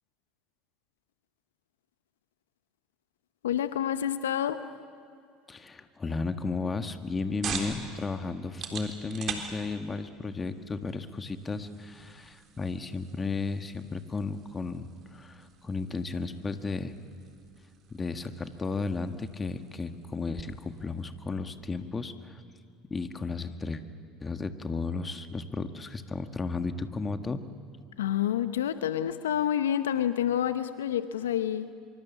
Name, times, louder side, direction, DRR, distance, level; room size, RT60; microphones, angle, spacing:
voice 1, 3.4-4.6 28.0-31.7, left 10 dB, 80° left, 12 dB, 0.8 m, -28 dB
voice 2, 5.5-16.9 17.9-22.4 22.9-23.8 24.2-27.4, left 4 dB, 25° left, 8 dB, 1.7 m, -34 dB
sound 1, 6.8-21.9, right 6 dB, 45° right, 3.8 m, -45 dB
25.0 x 24.0 x 7.3 m, 2.4 s
hypercardioid pair, 75°, 0 cm